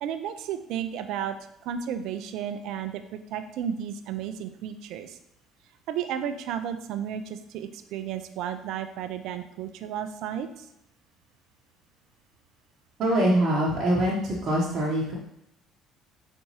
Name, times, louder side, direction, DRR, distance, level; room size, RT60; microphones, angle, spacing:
voice 1, 0.0-1.4 1.6-5.2 5.9-10.7, right 9 dB, 70° right, 9 dB, 0.3 m, -33 dB
voice 2, 13.0-15.2, right 1 dB, 55° right, -4 dB, 0.8 m, -24 dB
4.1 x 3.4 x 2.9 m, 0.78 s
hypercardioid pair, 65°, 0 cm